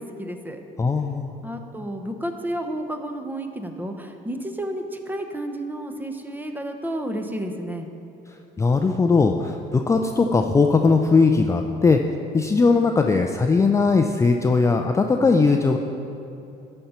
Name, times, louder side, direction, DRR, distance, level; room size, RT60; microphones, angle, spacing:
voice 1, 0.0-0.6 1.4-7.9, right 1 dB, 10° right, 5 dB, 0.8 m, -31 dB
voice 2, 0.8-1.3 8.3-12.0 12.3-15.8, left 4 dB, 15° left, 4 dB, 0.4 m, -19 dB
12.0 x 4.4 x 6.9 m, 2.9 s
cardioid pair, 110°, 17 cm